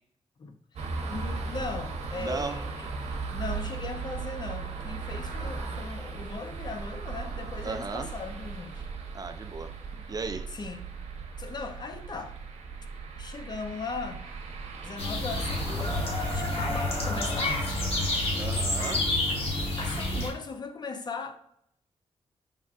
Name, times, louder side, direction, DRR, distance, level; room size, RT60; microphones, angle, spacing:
voice 1, 0.4-2.9 3.3-8.9 9.9-10.1 10.5-10.8 11.4-12.3 13.2-14.2 14.8-15.9 16.3-17.8 19.8-21.4, left 4 dB, 40° left, 0.5 m, -38 dB
sound 1, 0.7-20.3, right 4 dB, 90° right, 0.8 m, -38 dB
voice 2, 2.2-2.6 7.6-8.1 9.1-9.7 10.1-10.5 18.4-19.1, right 4 dB, 35° right, 0.3 m, -35 dB
sound 2, 15.0-20.3, left 2 dB, 60° left, 1.1 m, -29 dB
5.2 x 3.6 x 2.3 m
wide cardioid pair, 110°, 11 cm